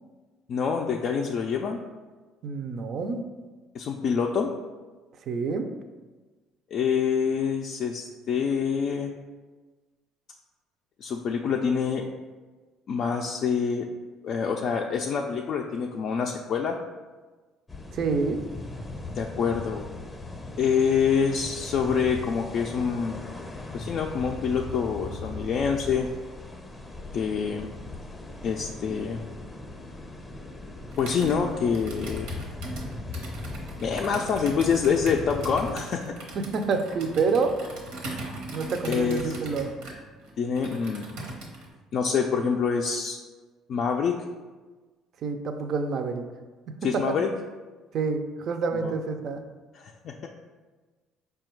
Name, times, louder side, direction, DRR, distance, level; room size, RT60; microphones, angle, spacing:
voice 1, 0.5-1.8 3.7-4.5 6.7-9.1 11.0-12.1 12.9-13.9 14.2-16.8 19.1-19.9 20.6-23.2 23.7-26.1 27.1-27.7 28.4-29.2 31.0-32.4 33.8-36.1 38.8-39.3 40.4-41.1 41.9-43.2 43.7-44.3 46.8-47.3 48.8-48.9 49.7-50.3, left 6 dB, 55° left, 1 dB, 0.3 m, -26 dB
voice 2, 2.4-3.2 5.3-5.7 17.9-18.4 36.3-37.5 38.5-39.7 45.2-46.3 46.7-47.2 47.9-49.4, right 4 dB, 55° right, 6 dB, 0.4 m, -27 dB
sound 1, 17.7-35.8, left 2 dB, 15° left, 0.6 m, -39 dB
Computer keyboard, 30.9-41.7, right 2 dB, 85° right, 1.0 m, -40 dB
4.8 x 2.3 x 4.5 m, 1.3 s
cardioid pair, 110°, 0 cm